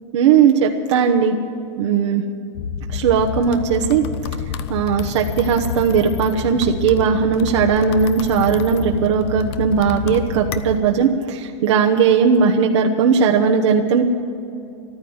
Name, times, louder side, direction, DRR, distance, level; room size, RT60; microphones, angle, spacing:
voice 1, 0.1-1.4 1.8-2.2 2.9-4.0 4.7-14.0, right 6 dB, 75° right, 1 dB, 1.1 m, -17 dB
sound 1, 2.5-10.8, left 7 dB, 65° left, 0.8 m, -28 dB
14.0 x 12.5 x 8.0 m, 2.6 s
supercardioid pair, 135°, 15 cm